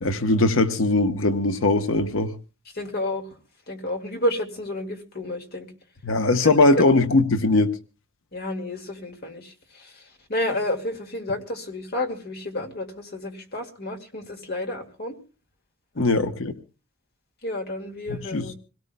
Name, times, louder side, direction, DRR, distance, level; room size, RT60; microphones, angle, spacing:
voice 1, 0.0-2.3 6.0-7.8 16.0-16.5 18.1-18.5, left 2 dB, 75° left, 0.9 m, -20 dB
voice 2, 2.8-3.2 3.7-5.7 6.4-6.7 8.3-9.5 9.8-9.9 10.3-15.2 16.0-16.2 17.4-18.5, left 1 dB, 50° left, 2.1 m, -30 dB
26.5 x 17.5 x 2.2 m
head